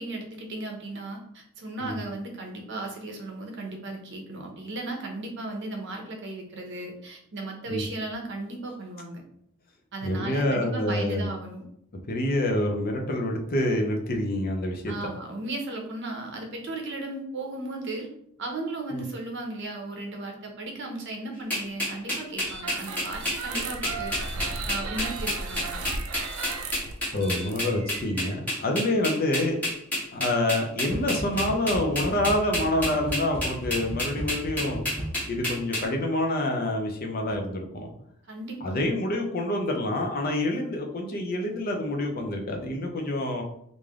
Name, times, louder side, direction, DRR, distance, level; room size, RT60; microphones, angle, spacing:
voice 1, 0.0-9.2 9.9-11.6 14.9-18.1 18.4-24.3 24.7-25.9 38.3-38.8, right 2 dB, 55° right, 2 dB, 0.8 m, -36 dB
voice 2, 10.0-11.3 12.1-15.1 18.9-19.0 27.1-29.6 30.1-34.8 35.3-37.9 38.6-43.4, left 1 dB, 45° left, 2 dB, 0.6 m, -27 dB
sound 1, 21.5-35.8, left 1 dB, 5° left, 1.4 m, -29 dB
sound 2, 22.4-28.3, right 3 dB, 80° right, 0.5 m, -35 dB
sound 3, 30.9-35.5, right 1 dB, 30° right, 1.2 m, -36 dB
3.3 x 2.6 x 3.5 m, 0.71 s
head